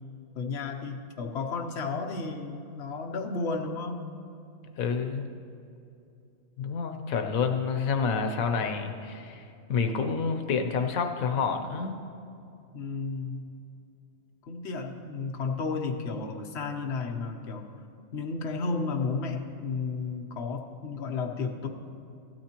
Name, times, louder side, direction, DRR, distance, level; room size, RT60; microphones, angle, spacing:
voice 1, 0.3-4.1 12.7-13.4 14.4-17.7 18.1-21.7, left 4 dB, 55° left, 2 dB, 1.1 m, -33 dB
voice 2, 4.8-5.3 6.6-9.4 9.7-12.0, left 5 dB, 85° left, 6 dB, 1.2 m, -28 dB
16.0 x 12.0 x 2.9 m, 2.6 s
omnidirectional pair, 1.4 m